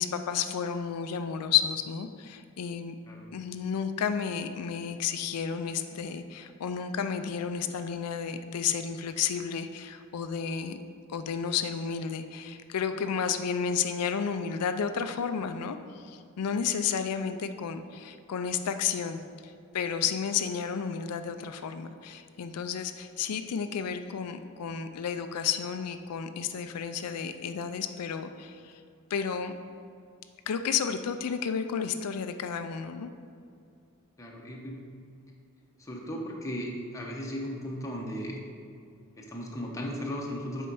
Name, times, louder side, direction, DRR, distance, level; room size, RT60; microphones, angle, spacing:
voice 1, 0.0-2.9 3.3-10.8 11.1-28.8 29.1-29.5 30.5-33.1, left 7 dB, 90° left, 8 dB, 0.4 m, -32 dB
voice 2, 34.2-34.8 35.8-38.4 39.2-40.7, equal, 15° left, -2 dB, 1.0 m, -36 dB
7.5 x 4.5 x 5.5 m, 2.4 s
head